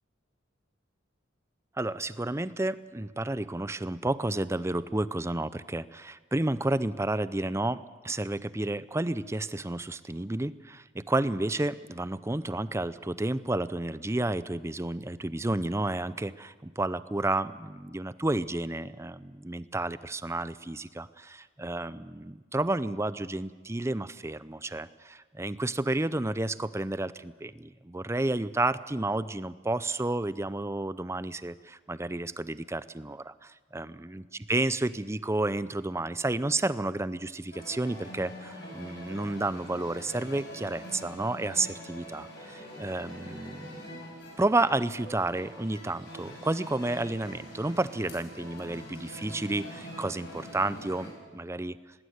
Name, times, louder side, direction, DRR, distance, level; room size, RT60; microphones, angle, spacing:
voice 1, 1.8-34.2 34.5-44.0 44.4-51.8, right 2 dB, 15° right, 16 dB, 0.6 m, -31 dB
sound 1, 37.5-51.1, equal, 60° left, 6.6 m, -44 dB
19.5 x 16.0 x 9.5 m, 1.4 s
head